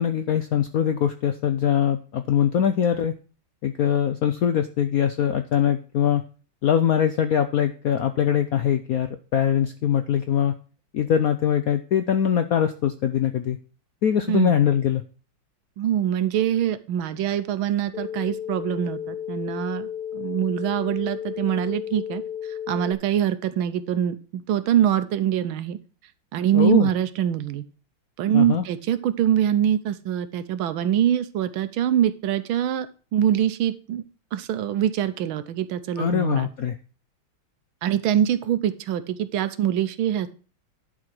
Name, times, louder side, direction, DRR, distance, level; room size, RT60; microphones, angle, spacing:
voice 1, 0.0-3.1 3.6-6.2 6.6-10.5 10.9-13.6 14.0-15.0 26.5-26.9 28.3-28.6 36.0-36.8, left 9 dB, 90° left, 9 dB, 0.7 m, -22 dB
voice 2, 15.8-22.2 22.7-25.8 26.3-27.6 28.2-34.0 34.3-36.5 37.8-40.3, right 10 dB, 75° right, 12 dB, 1.5 m, -24 dB
sound 1, 17.9-22.9, left 9 dB, 55° left, 0.5 m, -33 dB
11.0 x 4.9 x 6.0 m, 0.37 s
omnidirectional pair, 2.4 m